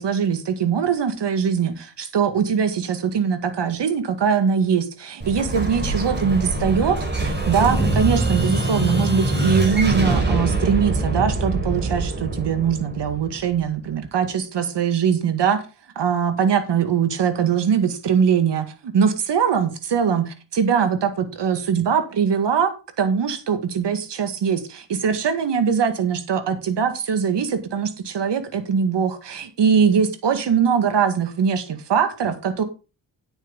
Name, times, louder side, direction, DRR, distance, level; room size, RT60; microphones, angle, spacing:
voice 1, 0.0-15.6 16.0-32.6, right 7 dB, 70° right, 2.0 m, -22 dB
Explosion, 5.2-13.9, right 2 dB, 25° right, 5.3 m, -24 dB
9.4 x 9.1 x 4.0 m
cardioid pair, 75°, 43 cm